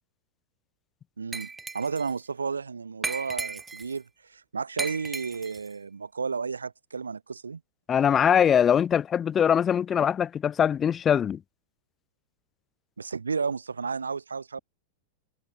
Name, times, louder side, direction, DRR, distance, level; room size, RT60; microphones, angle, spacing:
voice 1, 1.2-7.6 13.0-14.6, right 5 dB, 75° right, 0.7 m, -32 dB
Glass, 1.3-2.1 3.0-4.0 4.8-5.7, right 4 dB, 10° right, 1.9 m, -35 dB
voice 2, 7.9-11.4, left 8 dB, 25° left, 0.3 m, -22 dB
figure-of-eight pair, 90°, 0 cm